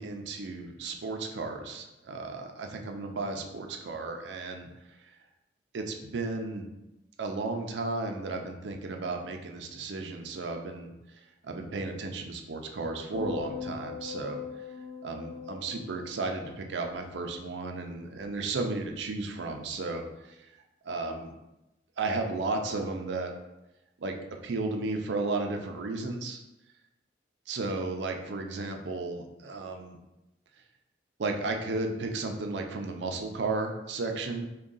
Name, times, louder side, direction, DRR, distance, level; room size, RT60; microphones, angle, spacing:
voice 1, 0.0-4.7 5.7-6.7 7.2-10.9 11.4-14.4 15.0-20.5 20.8-21.3 22.0-23.3 24.0-24.2 24.4-26.4 27.5-30.0 31.2-34.5, right 3 dB, 75° right, 4 dB, 0.4 m, -34 dB
sound 1, 13.1-17.5 17.8-18.2, left 5 dB, 80° left, 0.8 m, -41 dB
3.6 x 2.3 x 3.8 m, 0.96 s
head